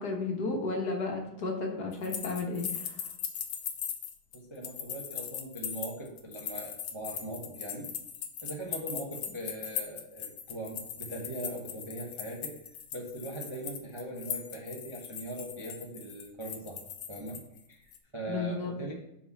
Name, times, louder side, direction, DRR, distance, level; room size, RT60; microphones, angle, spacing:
voice 1, 0.0-3.0 18.3-18.7, left 3 dB, 55° left, 0 dB, 1.7 m, -33 dB
sound 1, 1.9-17.6 17.9-18.0, left 8 dB, 80° left, 1.6 m, -39 dB
voice 2, 4.3-7.9 8.4-12.6 12.9-16.8 17.1-17.4 17.7-18.9, right 1 dB, 20° right, -2 dB, 0.8 m, -40 dB
5.5 x 5.4 x 6.6 m, 0.81 s
omnidirectional pair, 2.3 m